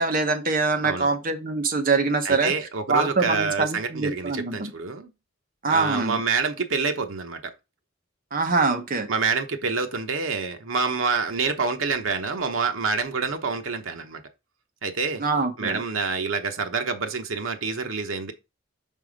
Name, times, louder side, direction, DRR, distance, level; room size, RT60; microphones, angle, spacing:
voice 1, 0.0-2.5 2.9-4.7 5.6-6.2 8.3-9.1 15.2-15.8, right 4 dB, 45° right, 1.1 m, -24 dB
voice 2, 2.2-5.1 5.7-7.5 9.1-14.2 14.8-15.2 15.6-18.3, right 4 dB, 80° right, 0.9 m, -27 dB
5.6 x 4.2 x 5.0 m
head